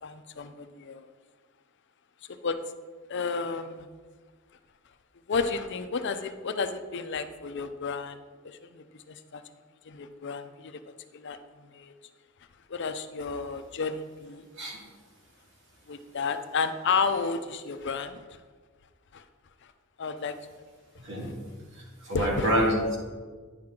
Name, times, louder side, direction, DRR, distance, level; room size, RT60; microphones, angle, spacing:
voice 1, 0.0-1.1 2.3-2.6 3.1-3.9 5.3-8.2 8.4-9.4 9.9-10.8 11.1-11.4 11.7-11.9 12.7-14.4 15.9-18.2 19.1-19.2 20.0-20.3 22.1-22.5, left 5 dB, 60° left, 9 dB, 0.5 m, -32 dB
voice 2, 21.0-21.4 21.7-22.7, equal, 65° right, -2 dB, 2.0 m, -27 dB
9.6 x 5.9 x 3.8 m, 1.5 s
head